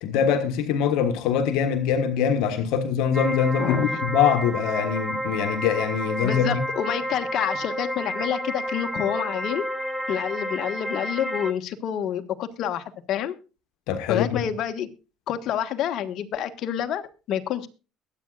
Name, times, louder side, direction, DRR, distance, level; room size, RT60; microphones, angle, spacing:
voice 1, 0.0-6.6 13.9-14.5, left 7 dB, 80° left, 1.4 m, -23 dB
sound 1, 3.1-11.5, equal, 10° right, 1.3 m, -30 dB
voice 2, 3.6-4.0 6.2-9.6 10.1-13.3 14.1-14.9 15.3-17.0 17.3-17.7, left 9 dB, 60° left, 1.4 m, -28 dB
22.5 x 8.7 x 2.4 m
cardioid pair, 105°, 0 cm